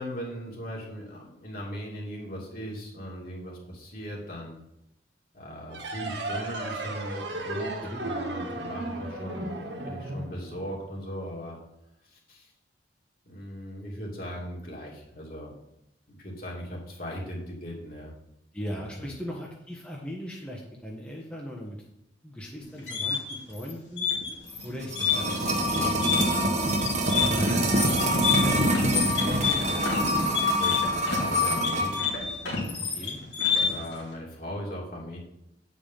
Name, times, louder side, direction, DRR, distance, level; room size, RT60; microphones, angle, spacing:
voice 1, 0.0-4.6 5.3-9.5 9.8-11.6 12.1-12.5 13.3-15.5 16.1-18.1 18.7-19.1 25.3-25.4 27.2-32.0 33.7-35.2, equal, 55° left, -3 dB, 2.7 m, -38 dB
sound 1, 5.7-11.0, right 2 dB, 70° right, 1.4 m, -35 dB
voice 2, 18.5-21.8 22.2-24.1 24.6-26.4 32.9-33.2, equal, 5° left, -3 dB, 1.1 m, -39 dB
sound 2, 22.6-33.9, left 6 dB, 80° left, 2.5 m, -29 dB
sound 3, 24.6-32.0 32.3-32.4, equal, 40° right, 1.2 m, -25 dB
8.9 x 5.2 x 5.7 m, 0.81 s
head